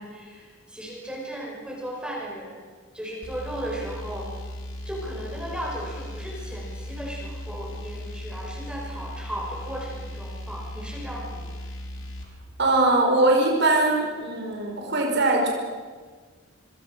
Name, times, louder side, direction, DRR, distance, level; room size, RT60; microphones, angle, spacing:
voice 1, 0.0-2.6 2.9-4.3 4.8-11.5, right 1 dB, 5° right, -2 dB, 6.3 m, -36 dB
sound 1, 3.2-12.3, left 1 dB, 75° left, 4.4 m, -37 dB
voice 2, 12.6-15.5, right 2 dB, 60° right, 0 dB, 5.2 m, -21 dB
26.0 x 25.5 x 6.8 m, 1.5 s
head